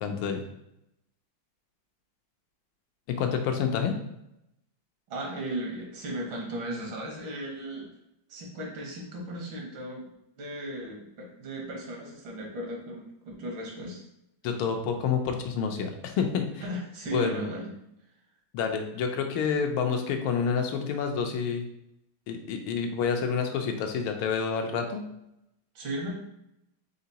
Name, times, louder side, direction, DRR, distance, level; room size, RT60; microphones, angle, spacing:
voice 1, 0.0-0.4 3.2-3.9 14.4-16.6 17.1-17.5 18.5-21.7 22.3-25.0, left 6 dB, 85° left, 4 dB, 1.5 m, -28 dB
voice 2, 5.1-7.9 8.3-10.1 10.4-14.0 16.6-17.7 25.8-26.2, right 1 dB, 75° right, -1 dB, 1.9 m, -36 dB
4.9 x 3.7 x 2.8 m, 0.83 s
omnidirectional pair, 2.2 m